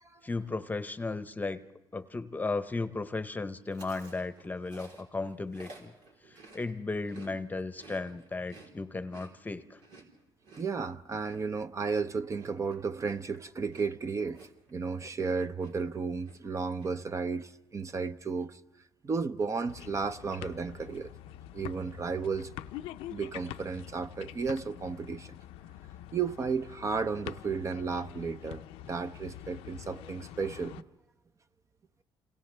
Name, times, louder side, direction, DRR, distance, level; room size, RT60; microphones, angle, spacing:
voice 1, 0.2-1.6 1.9-5.9 6.5-9.8, left 3 dB, 20° left, 0.8 m, -35 dB
Chewing mastication, 3.7-7.3 7.6-15.3 15.6-16.0 16.2-16.9, right 2 dB, 90° right, 3.8 m, -54 dB
voice 2, 10.6-18.6 19.0-21.1 21.5-22.5 23.1-25.3 26.1-30.8, right 5 dB, 35° right, 0.7 m, -33 dB
sound 1, 19.7-30.8, left 13 dB, 85° left, 0.6 m, -46 dB
28.5 x 27.0 x 3.4 m
cardioid pair, 90°, 9 cm